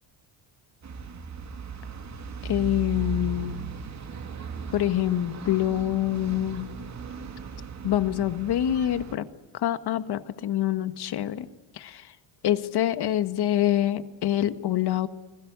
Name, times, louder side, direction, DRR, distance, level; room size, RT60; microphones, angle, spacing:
sound 1, 0.8-9.1, right 4 dB, 35° right, 2.7 m, -37 dB
voice 1, 2.4-3.5 4.7-6.7 7.8-9.3 9.5-11.5 11.7-12.1 12.4-15.1, left 12 dB, 50° left, 12 dB, 1.7 m, -26 dB
29.5 x 21.5 x 8.3 m, 1.1 s
cardioid pair, 140°, 50 cm